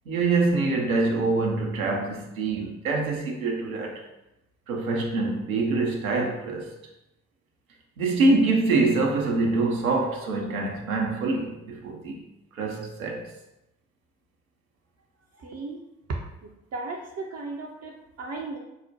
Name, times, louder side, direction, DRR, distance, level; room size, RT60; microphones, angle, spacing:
voice 1, 0.1-4.0 4.7-6.8 8.0-12.2 12.5-13.3, right 3 dB, 80° right, 0 dB, 0.7 m, -25 dB
voice 2, 15.3-15.8 16.4-18.6, right 3 dB, 40° right, 0 dB, 0.6 m, -36 dB
5.6 x 2.1 x 2.8 m, 0.90 s
figure-of-eight pair, 50°, 41 cm